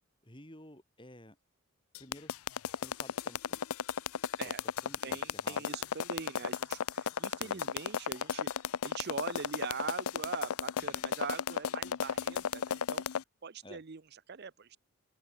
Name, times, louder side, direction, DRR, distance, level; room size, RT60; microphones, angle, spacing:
voice 1, 0.2-1.4 2.0-2.4 2.7-3.6 4.4-4.5 4.8-5.7 7.4-7.7 13.6-13.8, left 1 dB, 20° left, 5.7 m, -53 dB
sound 1, 1.9-13.2, left 7 dB, 75° left, 0.5 m, -34 dB
voice 2, 5.0-8.5 8.8-13.0 13.4-14.8, right 5 dB, 45° right, 0.6 m, -42 dB
head